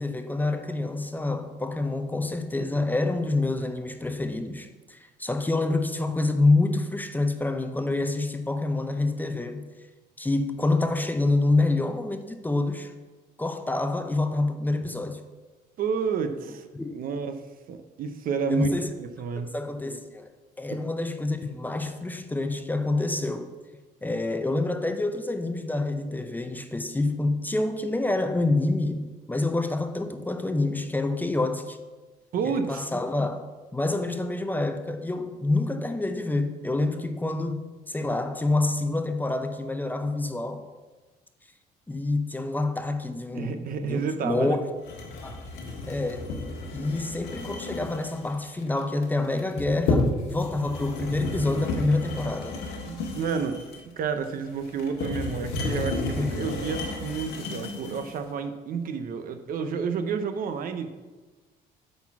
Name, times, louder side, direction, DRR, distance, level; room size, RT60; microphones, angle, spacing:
voice 1, 0.0-9.7 10.2-12.9 13.4-15.2 16.7-16.9 18.5-18.9 19.5-23.5 24.0-31.8 32.4-33.4 33.7-40.7 41.9-44.6 45.2-45.4 45.9-46.3 46.7-52.6 56.2-56.3, left 2 dB, 10° left, 0.6 m, -27 dB
voice 2, 15.8-17.4 17.7-18.7 19.0-19.5 32.3-32.9 43.3-44.6 52.8-53.6 54.0-60.9, right 6 dB, 60° right, 0.7 m, -30 dB
sound 1, 44.8-58.2, left 3 dB, 85° left, 1.6 m, -32 dB
8.9 x 4.1 x 5.9 m
cardioid pair, 110°, 17 cm